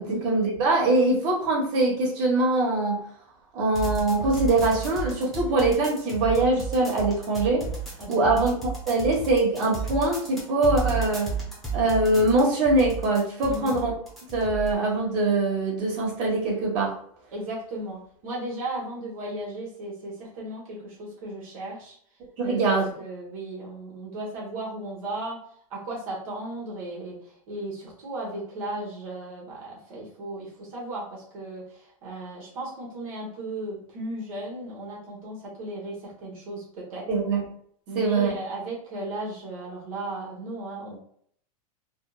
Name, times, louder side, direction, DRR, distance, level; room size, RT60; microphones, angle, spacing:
voice 1, 0.0-3.0 3.5-7.7 8.1-11.3 11.7-13.9 14.3-16.9 22.4-22.9 37.1-37.4 37.9-38.3, right 2 dB, 45° right, -3 dB, 1.3 m, -23 dB
sound 1, 3.7-14.7, right 4 dB, ahead, 0.8 m, -33 dB
voice 2, 8.0-8.5 13.5-13.8 17.3-21.9 22.4-25.4 25.7-27.2 27.5-37.0 37.9-41.0, right 1 dB, 70° right, -5 dB, 1.2 m, -35 dB
3.4 x 2.0 x 2.3 m, 0.63 s
supercardioid pair, 135°, 18 cm